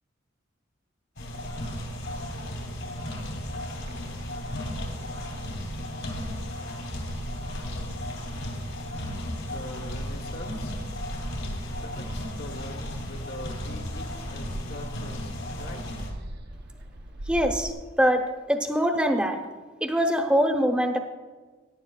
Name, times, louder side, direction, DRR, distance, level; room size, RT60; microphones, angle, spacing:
sound 1, 1.2-16.1, equal, 75° left, 2.7 m, -35 dB
sound 2, 3.8-17.7, right 1 dB, 55° right, 0.8 m, -41 dB
voice 1, 9.4-10.8 11.7-15.9, left 1 dB, 55° left, 3 dB, 1.3 m, -43 dB
voice 2, 17.3-17.7 18.0-19.4 19.8-21.0, equal, 5° right, 4 dB, 0.9 m, -23 dB
17.5 x 10.0 x 2.3 m, 1.3 s
head